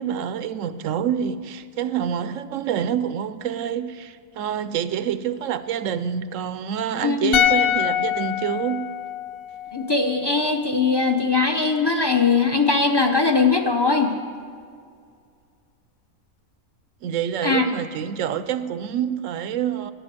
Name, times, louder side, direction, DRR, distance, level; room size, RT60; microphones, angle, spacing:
voice 1, 0.0-8.9 17.0-19.9, right 9 dB, 70° right, 0.9 m, -27 dB
voice 2, 7.0-7.4 9.7-14.1 17.4-17.7, left 4 dB, 25° left, 0.6 m, -20 dB
sound 1, 7.3-10.6 10.8-11.0, left 10 dB, 75° left, 1.1 m, -25 dB
11.5 x 9.4 x 7.7 m
omnidirectional pair, 1.5 m